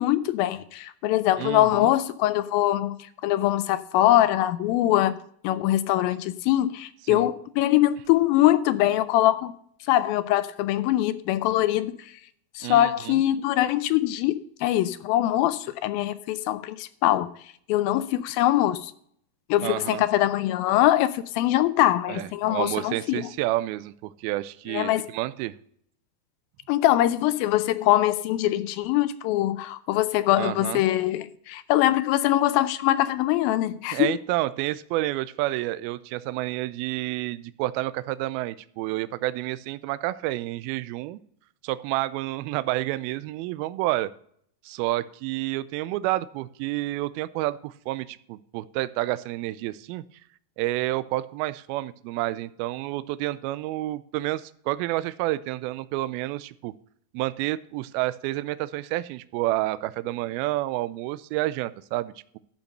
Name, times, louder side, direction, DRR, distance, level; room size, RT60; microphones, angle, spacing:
voice 1, 0.0-5.2 5.4-9.5 9.9-12.1 12.6-17.3 17.7-18.9 19.5-23.3 24.7-25.1 26.7-34.1, left 14 dB, 80° left, 2.2 m, -23 dB
voice 2, 1.4-1.9 7.1-7.3 12.6-13.2 19.6-20.0 22.1-25.5 30.4-30.8 33.9-41.2 41.6-44.1 44.6-50.0 50.6-56.7 57.1-62.4, right 17 dB, 85° right, 2.4 m, -29 dB
12.0 x 5.4 x 6.6 m
omnidirectional pair, 4.4 m